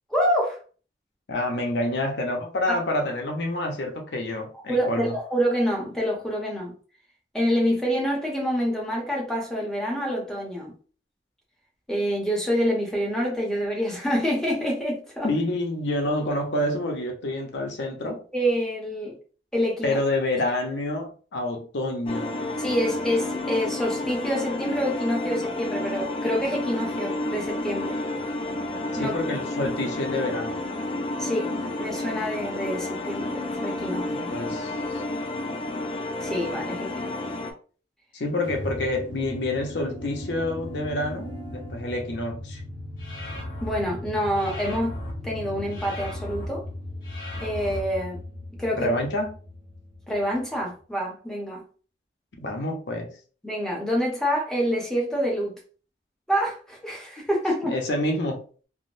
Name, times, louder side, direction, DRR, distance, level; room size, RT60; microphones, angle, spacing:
voice 1, 0.1-0.6 2.7-2.8 4.7-6.7 7.3-10.7 11.9-15.3 18.3-19.2 19.5-20.0 22.6-28.0 29.0-29.2 31.2-31.5 31.8-34.3 36.2-37.1 43.6-46.6 47.4-48.2 48.6-48.9 50.1-51.6 53.4-55.6 56.3-57.7, equal, 5° left, -3 dB, 0.9 m, -27 dB
voice 2, 1.3-5.2 15.2-18.2 19.8-22.3 29.0-30.6 34.1-35.0 38.1-42.6 48.8-49.4 52.4-53.1 57.6-58.6, left 1 dB, 80° left, 2 dB, 0.7 m, -28 dB
sound 1, 22.1-37.5, left 2 dB, 30° left, 0.4 m, -30 dB
sound 2, 38.4-50.6, left 1 dB, 25° right, 0.8 m, -38 dB
sound 3, 43.0-43.8 44.3-45.1 45.7-46.5 47.0-47.8, equal, 50° left, 1.0 m, -38 dB
3.6 x 2.1 x 2.5 m, 0.40 s
head